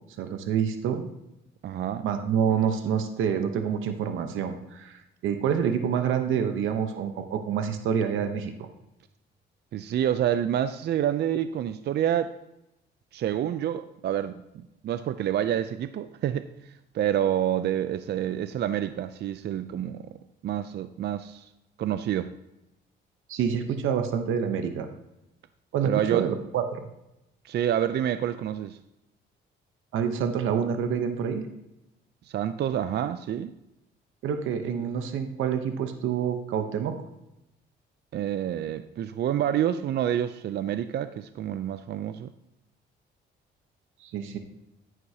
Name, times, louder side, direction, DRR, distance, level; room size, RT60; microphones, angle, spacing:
voice 1, 0.2-1.1 2.0-8.5 23.3-24.9 25.7-26.9 29.9-31.5 34.2-36.9 44.0-44.4, right 7 dB, 85° right, 7 dB, 0.9 m, -27 dB
voice 2, 1.6-2.1 9.7-12.3 13.1-20.0 20.4-21.5 21.8-22.3 25.8-26.3 27.4-28.8 32.3-33.5 38.1-42.3, right 10 dB, 60° right, 12 dB, 0.4 m, -28 dB
9.9 x 9.2 x 2.8 m, 0.90 s
cardioid pair, 90°, 20 cm